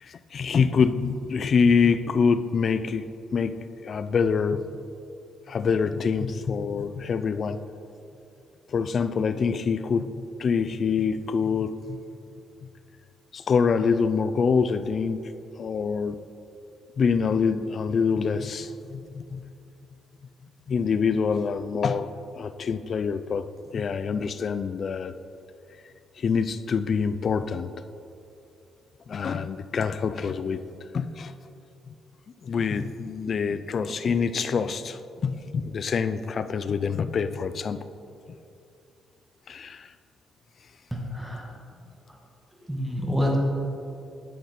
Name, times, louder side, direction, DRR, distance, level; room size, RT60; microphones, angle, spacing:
voice 1, 0.0-3.6 3.8-4.6 5.5-7.6 8.7-10.1 10.4-12.0 13.3-15.3 15.6-16.2 17.0-19.5 20.7-22.1 22.4-23.5 23.7-25.1 26.2-27.7 29.1-30.6 30.9-31.3 31.9-32.0 32.4-37.8 39.5-39.9, left 5 dB, 50° left, 12 dB, 0.3 m, -25 dB
voice 2, 40.9-41.5 42.1-42.2 42.7-43.4, equal, 5° right, -1 dB, 1.3 m, -28 dB
11.5 x 4.3 x 4.1 m, 2.6 s
cardioid pair, 90°, 0 cm